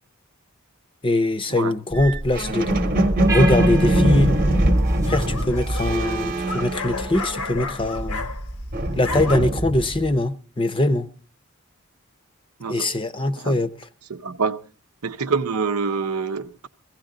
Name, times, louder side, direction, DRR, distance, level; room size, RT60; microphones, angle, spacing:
voice 1, 1.0-2.8 3.3-4.4 5.1-8.3 9.0-11.1 12.7-13.7, left 2 dB, 25° left, 0.7 m, -22 dB
sound 1, 1.9-7.5 7.8-10.1, right 1 dB, 40° right, 1.1 m, -22 dB
sound 2, 3.3-6.5, right 2 dB, 15° right, 0.8 m, -33 dB
sound 3, 3.4-3.9 4.7-8.6 8.9-9.4, left 4 dB, 80° left, 1.0 m, -33 dB
voice 2, 12.6-13.0 13.4-13.6 14.1-14.6 15.0-16.7, right 5 dB, 80° right, 0.7 m, -26 dB
16.0 x 16.0 x 3.8 m
head